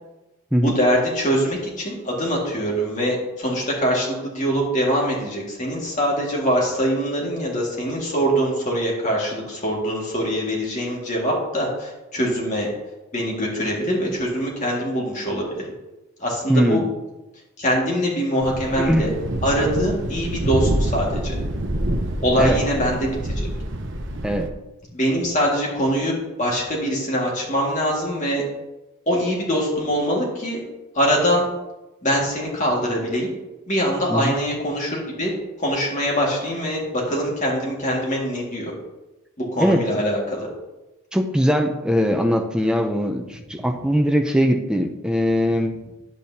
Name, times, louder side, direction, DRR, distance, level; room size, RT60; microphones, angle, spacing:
voice 1, 0.6-12.7 13.1-15.6 16.2-16.8 17.6-19.1 19.4-21.4 22.2-23.3 24.9-28.4 29.1-30.6 30.9-31.5 32.0-33.3 33.7-35.3 35.6-38.7 39.4-40.5, equal, 35° left, -3 dB, 1.9 m, -23 dB
voice 2, 16.5-16.9 18.8-19.1 22.4-22.6 24.2-24.5 34.1-34.3 39.6-39.8 41.1-45.8, equal, 5° right, 4 dB, 0.5 m, -20 dB
Thunder, 18.4-24.5, right 1 dB, 55° right, 0.8 m, -26 dB
10.5 x 8.2 x 2.8 m, 1.0 s
head